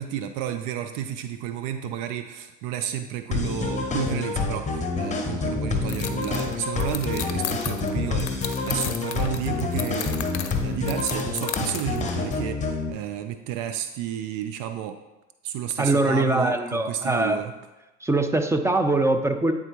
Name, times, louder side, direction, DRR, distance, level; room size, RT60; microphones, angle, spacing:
voice 1, 0.0-10.2 10.6-15.0 15.4-17.5, right 10 dB, 60° right, 9 dB, 0.5 m, -31 dB
sound 1, 3.3-12.9, left 4 dB, 20° left, 1.0 m, -28 dB
sound 2, 5.9-12.4, left 10 dB, 85° left, 0.6 m, -36 dB
voice 2, 15.8-17.4 18.0-19.5, right 2 dB, 10° right, 7 dB, 0.5 m, -22 dB
8.9 x 3.6 x 2.9 m, 1.0 s
hypercardioid pair, 75°, 35 cm